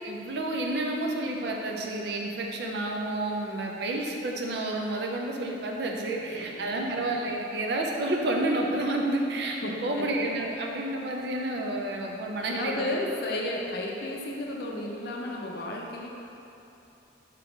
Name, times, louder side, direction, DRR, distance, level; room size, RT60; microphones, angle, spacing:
voice 1, 0.0-12.9, right 1 dB, 60° right, 0 dB, 0.5 m, -30 dB
voice 2, 6.3-6.9 9.6-10.1 12.5-16.1, left 1 dB, 55° left, -1 dB, 0.5 m, -33 dB
4.8 x 2.9 x 3.6 m, 3.0 s
head